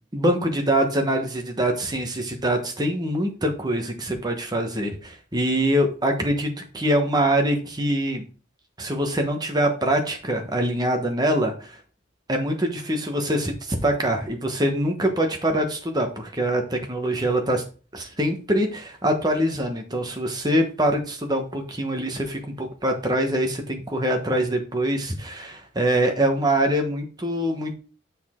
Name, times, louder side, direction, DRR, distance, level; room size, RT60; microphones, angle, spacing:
voice 1, 0.1-8.2 8.8-11.8 12.3-17.6 17.9-27.8, right 1 dB, 20° right, 3 dB, 1.2 m, -24 dB
7.1 x 6.2 x 3.7 m, 0.37 s
head